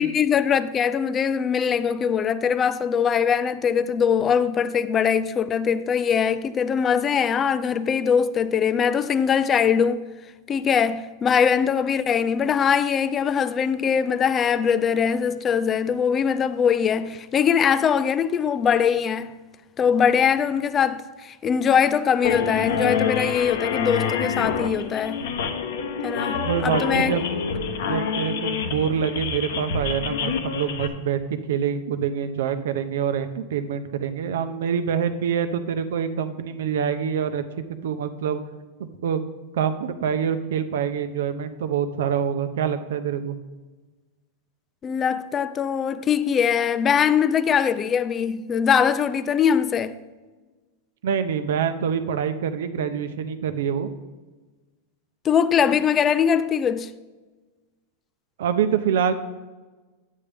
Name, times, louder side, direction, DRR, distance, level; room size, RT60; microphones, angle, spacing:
voice 1, 0.0-10.0 10.5-19.3 19.8-25.2 26.0-27.2 44.8-50.0 55.2-56.9, left 7 dB, 20° left, 0.4 m, -22 dB
sound 1, 22.2-30.9, left 6 dB, 75° left, 0.9 m, -27 dB
voice 2, 26.4-27.2 27.8-31.2 31.5-37.4 37.8-38.4 38.8-39.2 39.5-43.4 51.0-53.9 58.4-59.1, right 8 dB, 75° right, 0.8 m, -25 dB
10.5 x 8.5 x 3.4 m
supercardioid pair, 150°, 0 cm